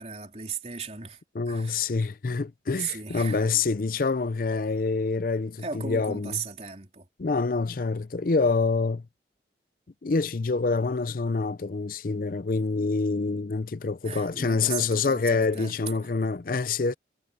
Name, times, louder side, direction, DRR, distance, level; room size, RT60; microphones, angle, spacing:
voice 1, 0.0-1.2 1.5-2.0 2.8-3.5 5.6-7.1 14.0-15.8, right 6 dB, 35° right, 3.9 m, -36 dB
voice 2, 1.3-6.4 7.2-9.0 10.0-16.9, left 4 dB, 50° left, 0.5 m, -26 dB
head